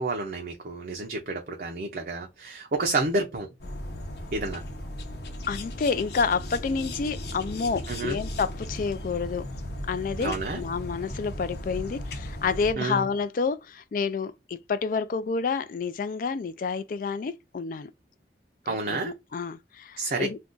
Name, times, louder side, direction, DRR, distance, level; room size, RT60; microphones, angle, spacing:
voice 1, 0.0-3.5 4.3-4.6 7.9-8.2 10.2-10.6 12.8-13.0 18.7-19.1 20.0-20.3, right 3 dB, 55° right, 0.5 m, -29 dB
sound 1, 3.6-12.7, left 1 dB, 70° left, 0.8 m, -36 dB
voice 2, 5.5-9.5 9.9-17.9 18.7-20.4, left 5 dB, 50° left, 0.3 m, -29 dB
2.6 x 2.3 x 3.6 m
head